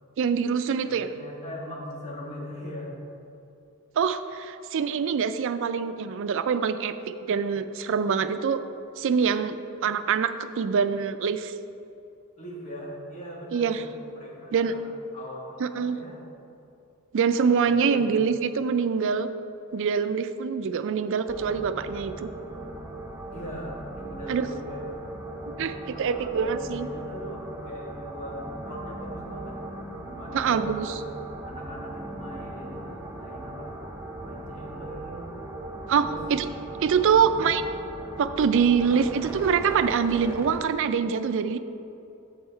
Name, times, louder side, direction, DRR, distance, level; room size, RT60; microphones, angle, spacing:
voice 1, 0.2-1.1 4.0-6.9 7.2-8.6 9.0-11.5 13.5-13.8 14.5-14.7 15.6-16.0 17.1-19.3 19.7-22.3 24.3-24.5 25.6-26.9 30.3-30.9 35.9-36.5 36.8-37.6 38.2-41.6, right 6 dB, 60° right, 11 dB, 0.4 m, -25 dB
voice 2, 0.8-2.9 12.4-16.2 17.6-18.2 23.3-24.9 25.9-29.6 30.0-31.0 31.5-33.7 34.2-35.3 35.9-36.2 36.7-37.6, left 1 dB, 35° left, -4 dB, 1.5 m, -41 dB
sound 1, 21.3-40.6, right 1 dB, 10° right, 0.6 m, -38 dB
7.8 x 5.6 x 4.4 m, 2.7 s
head